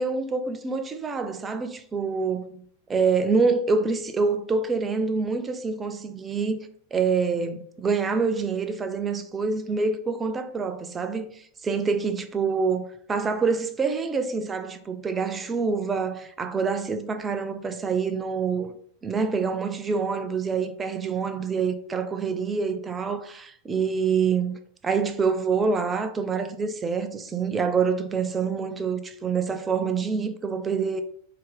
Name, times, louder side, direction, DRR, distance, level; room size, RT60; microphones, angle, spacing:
voice 1, 0.0-2.6 2.9-6.6 6.9-11.3 11.6-18.7 19.0-24.6 24.8-31.0, right 5 dB, 20° right, 0.3 m, -26 dB
2.5 x 2.0 x 3.7 m
figure-of-eight pair, 90°, 0 cm